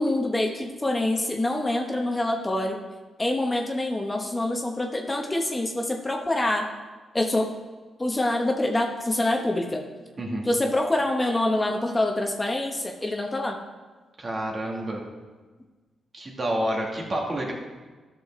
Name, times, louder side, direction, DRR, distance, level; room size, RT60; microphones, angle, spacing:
voice 1, 0.0-2.8 3.2-6.7 7.1-7.5 8.0-9.8 10.5-13.6, left 1 dB, 20° left, 2 dB, 1.0 m, -25 dB
voice 2, 14.2-15.0 16.1-17.5, right 1 dB, 40° right, -1 dB, 2.1 m, -29 dB
12.5 x 6.3 x 3.7 m, 1.3 s
cardioid pair, 75°, 0 cm